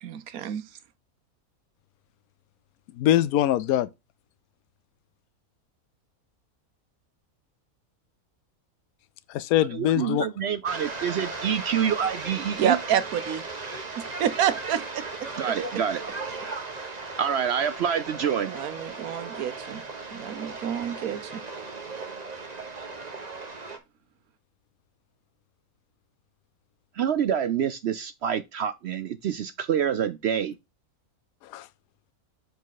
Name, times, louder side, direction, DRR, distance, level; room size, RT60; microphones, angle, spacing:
voice 1, 0.0-0.6 12.6-13.4 14.0-15.0 18.5-19.8 20.1-21.4, right 9 dB, 80° right, 1.3 m, -28 dB
voice 2, 2.9-3.9 9.3-10.3 31.4-31.7, left 12 dB, 80° left, 1.0 m, -23 dB
voice 3, 9.7-12.8 15.4-16.0 17.2-18.5 27.0-30.5, right 8 dB, 65° right, 0.7 m, -27 dB
sound 1, 10.7-23.8, right 3 dB, 30° right, 1.2 m, -37 dB
7.4 x 4.2 x 4.0 m
omnidirectional pair, 1.5 m